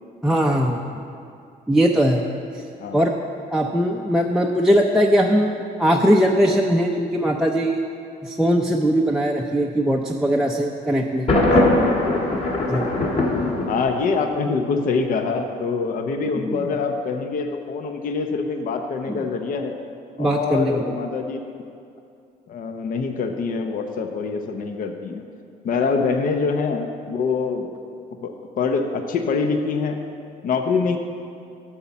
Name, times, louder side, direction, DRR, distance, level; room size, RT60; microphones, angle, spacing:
voice 1, 0.2-1.0 1.7-2.3 2.5-2.6 2.9-3.1 3.5-7.8 8.2-11.4 12.7-12.9 16.4-16.6 19.1-19.2 20.2-21.0, equal, 5° right, -1 dB, 0.5 m, -20 dB
Thunder, 11.3-14.3, left 1 dB, 40° left, 1.8 m, -20 dB
voice 2, 13.3-19.8 20.2-21.4 22.5-25.2 25.6-27.7 28.2-30.0 30.4-31.0, left 4 dB, 55° left, 5 dB, 0.8 m, -25 dB
12.5 x 4.4 x 7.1 m, 2.5 s
cardioid pair, 110°, 17 cm